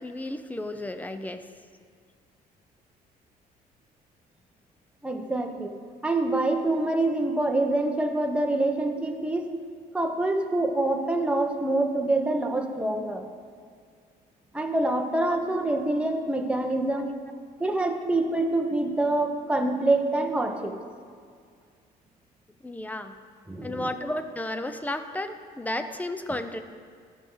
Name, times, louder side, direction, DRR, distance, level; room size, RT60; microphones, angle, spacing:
voice 1, 0.0-1.4 15.3-15.4 22.6-23.2 23.6-26.6, left 1 dB, 10° left, 9 dB, 0.6 m, -33 dB
voice 2, 5.0-5.7 6.0-9.6 9.9-13.2 14.5-17.1 17.6-20.7 23.5-23.9, right 2 dB, 5° right, 3 dB, 1.0 m, -26 dB
14.0 x 6.4 x 3.9 m, 2.1 s
cardioid pair, 110°, 17 cm